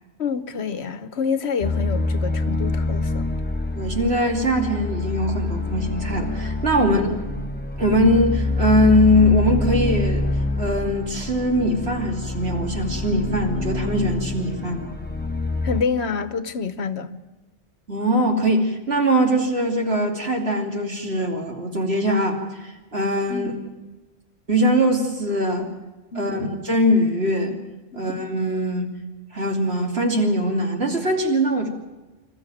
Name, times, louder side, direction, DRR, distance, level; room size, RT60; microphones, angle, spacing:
voice 1, 0.2-3.3 6.8-7.1 15.6-17.2 23.3-23.6 26.1-26.4 27.9-28.1, left 5 dB, 65° left, 1.2 m, -27 dB
sound 1, 1.6-15.8, left 2 dB, 10° left, 1.1 m, -26 dB
voice 2, 3.7-7.0 7.8-10.3 10.6-14.9 17.9-23.5 24.5-25.7 26.1-27.6 27.9-28.9 29.3-31.7, equal, 60° right, 3.1 m, -21 dB
26.0 x 14.0 x 9.1 m
omnidirectional pair, 1.2 m